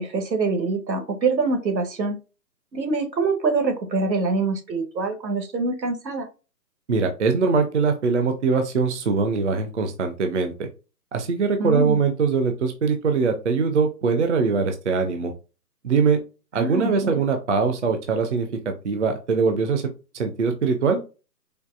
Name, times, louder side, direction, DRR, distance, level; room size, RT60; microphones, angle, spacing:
voice 1, 0.0-2.2 2.7-6.3 11.6-12.0 16.6-17.2, right 3 dB, 85° right, 6 dB, 1.3 m, -25 dB
voice 2, 6.9-10.7 11.1-15.3 15.8-16.2 16.5-18.5 18.8-19.8 20.1-21.0, right 4 dB, 45° right, 6 dB, 0.5 m, -22 dB
4.5 x 2.5 x 2.4 m, 0.32 s
hypercardioid pair, 155°, 50 cm